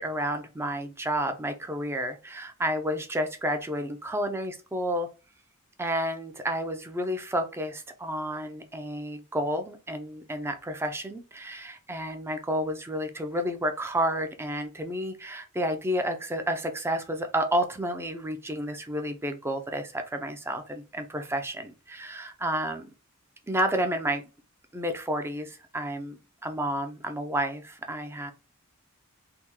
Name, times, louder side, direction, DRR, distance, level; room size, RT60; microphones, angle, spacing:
voice 1, 0.0-5.1 5.8-22.9 23.5-24.2 24.7-28.3, equal, 10° right, 7 dB, 0.4 m, -31 dB
3.4 x 2.3 x 2.9 m, 0.32 s
head